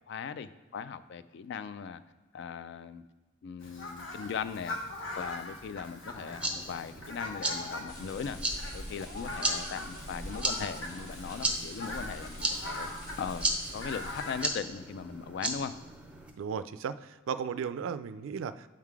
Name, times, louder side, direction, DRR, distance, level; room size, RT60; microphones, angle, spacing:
voice 1, 0.1-2.0 2.3-3.0 3.4-4.8 5.1-8.4 8.7-12.9 13.2-13.5 13.7-15.7, left 6 dB, 60° left, 14 dB, 0.3 m, -39 dB
Fowl, 3.6-14.5, left 2 dB, 75° left, 0.9 m, -42 dB
sound 1, 6.1-16.3, right 2 dB, 5° right, 0.6 m, -36 dB
sound 2, 7.9-14.4, equal, 40° left, 1.5 m, -45 dB
voice 2, 16.4-18.7, right 7 dB, 80° right, 14 dB, 0.3 m, -35 dB
7.4 x 3.7 x 4.7 m, 1.2 s
head